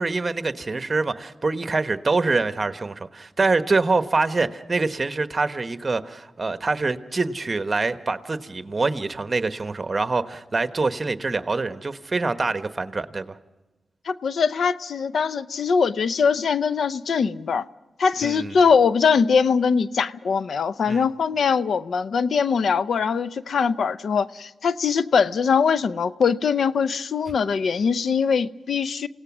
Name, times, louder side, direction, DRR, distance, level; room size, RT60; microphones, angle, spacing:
voice 1, 0.0-13.4 18.2-18.5 20.8-21.0, right 3 dB, 35° right, 1.2 m, -25 dB
voice 2, 14.1-17.7 18.0-29.1, left 6 dB, 75° left, 0.6 m, -22 dB
28.0 x 17.5 x 6.2 m
cardioid pair, 65°, 0 cm